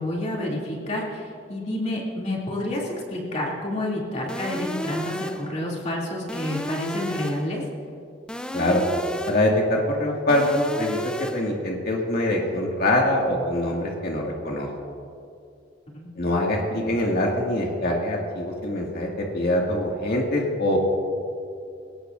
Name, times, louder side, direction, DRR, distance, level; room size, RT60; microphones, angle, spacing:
voice 1, 0.0-7.6 15.9-16.1, left 1 dB, 40° left, -3 dB, 2.7 m, -29 dB
sound 1, 4.3-5.6 6.3-7.6 8.3-9.6 10.3-11.6, equal, 5° left, 0.5 m, -32 dB
voice 2, 9.3-14.7 16.2-20.8, left 1 dB, 60° left, -1 dB, 2.1 m, -24 dB
21.5 x 18.0 x 2.6 m, 2.4 s
head